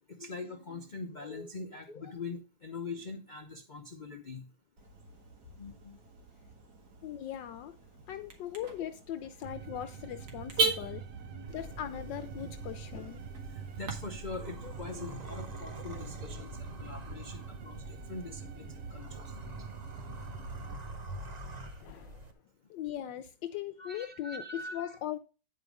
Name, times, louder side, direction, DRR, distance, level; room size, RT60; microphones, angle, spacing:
voice 1, 0.1-4.5 5.6-6.0 11.3-11.6 13.5-19.3 23.8-25.0, left 3 dB, 50° left, 0.5 m, -43 dB
Car / Alarm, 4.8-13.9, right 4 dB, 55° right, 2.2 m, -39 dB
voice 2, 7.0-7.8 8.1-11.0 11.5-13.2 21.8-22.2 22.7-25.2, left 11 dB, 75° left, 1.3 m, -39 dB
sound 1, 9.4-20.8, right 6 dB, 80° right, 0.6 m, -45 dB
sound 2, 11.5-22.3, right 1 dB, 30° right, 0.9 m, -46 dB
10.0 x 4.8 x 5.2 m
omnidirectional pair, 2.0 m